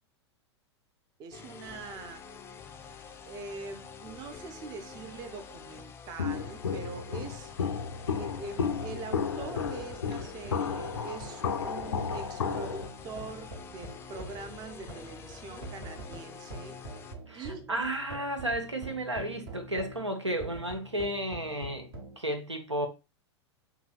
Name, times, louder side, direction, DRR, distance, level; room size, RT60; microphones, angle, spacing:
voice 1, 1.2-2.3 3.3-7.5 8.1-16.8 17.3-17.8, right 4 dB, 30° right, 0.6 m, -43 dB
sound 1, 1.3-17.1, left 6 dB, 15° left, 0.4 m, -47 dB
Walk footsteps, 6.2-12.9, left 6 dB, 75° left, 0.4 m, -33 dB
sound 2, 9.4-22.2, right 1 dB, 60° right, 1.1 m, -46 dB
voice 2, 17.3-21.9 22.2-22.9, right 1 dB, 90° right, 0.7 m, -33 dB
5.9 x 2.8 x 2.3 m
figure-of-eight pair, 95°, 15 cm